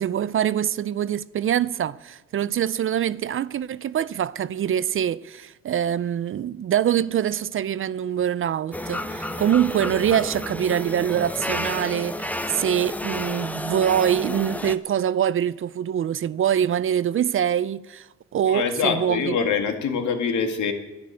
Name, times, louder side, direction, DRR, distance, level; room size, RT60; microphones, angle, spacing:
voice 1, 0.0-18.1 18.3-19.2, right 9 dB, 45° right, 0.5 m, -24 dB
sound 1, 8.7-14.8, left 1 dB, 5° left, 0.7 m, -31 dB
voice 2, 18.5-20.7, left 6 dB, 75° left, 1.9 m, -24 dB
11.0 x 9.9 x 8.3 m
cardioid pair, 90°, 30 cm